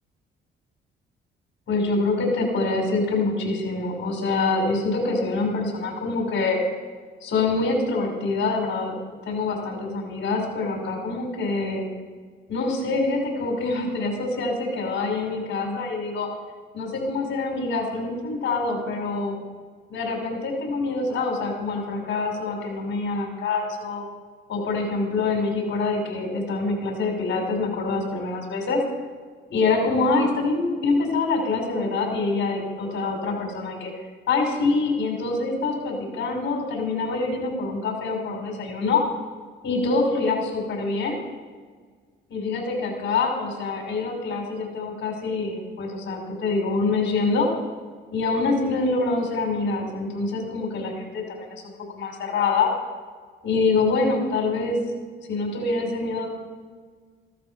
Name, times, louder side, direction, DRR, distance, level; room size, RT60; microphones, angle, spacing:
voice 1, 1.7-6.6 7.2-9.0 9.2-11.9 12.5-16.3 16.7-19.4 19.9-24.0 24.5-28.8 29.5-33.9 34.3-39.0 39.6-41.2 42.3-47.5 48.1-51.6 51.9-52.7 53.4-54.8 55.3-56.2, left 3 dB, 65° left, 1 dB, 5.9 m, -25 dB
16.0 x 12.5 x 6.0 m, 1.5 s
cardioid pair, 90°, 20 cm